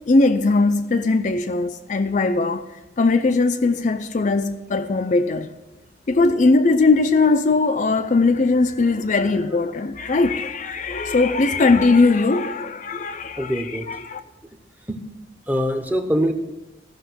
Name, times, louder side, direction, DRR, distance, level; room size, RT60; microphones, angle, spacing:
voice 1, 0.1-2.7 3.0-5.5 6.1-14.2, left 3 dB, 40° left, 0.4 m, -19 dB
voice 2, 13.4-13.9 14.9-15.1 15.5-16.3, equal, 10° right, 0.8 m, -23 dB
14.5 x 6.0 x 6.1 m
head